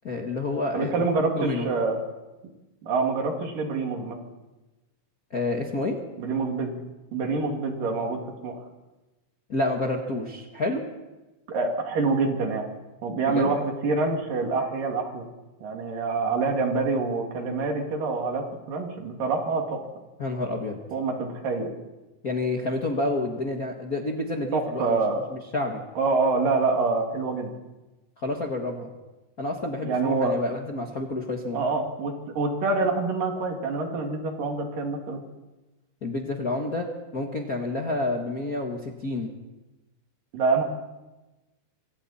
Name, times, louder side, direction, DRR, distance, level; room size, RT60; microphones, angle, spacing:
voice 1, 0.0-1.0 1.4-1.7 5.3-6.0 9.5-10.8 13.3-13.5 20.2-20.8 22.2-25.0 25.3-25.8 28.2-28.9 29.4-31.6 36.0-36.9 37.1-39.3, left 2 dB, 45° left, 0 dB, 1.2 m, -29 dB
voice 2, 0.7-2.0 2.8-4.2 6.2-6.7 7.1-8.6 11.5-12.7 13.0-15.3 15.6-19.8 20.9-21.7 24.5-25.2 26.0-27.5 29.8-30.3 31.5-35.2 40.3-40.6, right 3 dB, 70° right, 2 dB, 4.2 m, -26 dB
26.0 x 25.5 x 4.3 m, 1.1 s
omnidirectional pair, 4.0 m